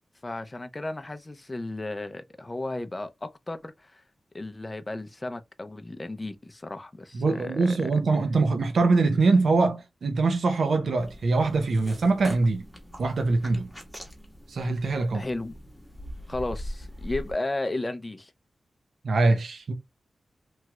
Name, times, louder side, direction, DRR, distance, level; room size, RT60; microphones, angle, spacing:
voice 1, 0.2-4.0 4.3-7.9 15.1-15.5 16.3-18.3, left 2 dB, 25° left, 0.4 m, -34 dB
voice 2, 7.1-12.6 13.0-13.7 14.5-15.3 19.0-19.7, right 3 dB, 80° right, 0.6 m, -23 dB
sound 1, 11.0-17.3, equal, ahead, 1.0 m, -42 dB
3.1 x 2.3 x 2.9 m
wide cardioid pair, 125°, 0 cm